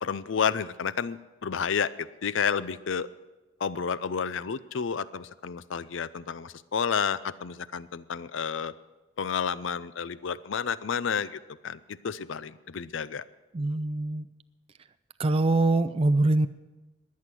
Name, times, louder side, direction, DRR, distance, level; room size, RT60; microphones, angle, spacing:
voice 1, 0.0-3.1 3.6-8.7 9.2-13.2, left 6 dB, 70° left, 17 dB, 0.5 m, -31 dB
voice 2, 13.5-14.3 15.2-16.5, right 2 dB, 30° right, 10 dB, 0.4 m, -23 dB
21.0 x 8.5 x 6.2 m, 1.2 s
head